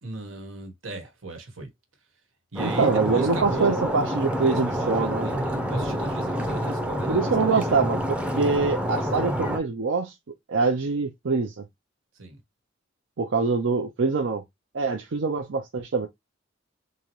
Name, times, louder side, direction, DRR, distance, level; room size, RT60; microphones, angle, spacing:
voice 1, 0.0-1.7 2.5-4.1 4.4-7.9 12.1-12.4, right 2 dB, 90° right, 1.3 m, -36 dB
Stream, 2.6-9.6, equal, 5° right, 0.6 m, -28 dB
voice 2, 2.6-5.3 7.1-10.1 10.5-11.6 13.2-14.4 14.7-16.1, right 4 dB, 70° right, 0.6 m, -24 dB
3.8 x 2.8 x 3.1 m
head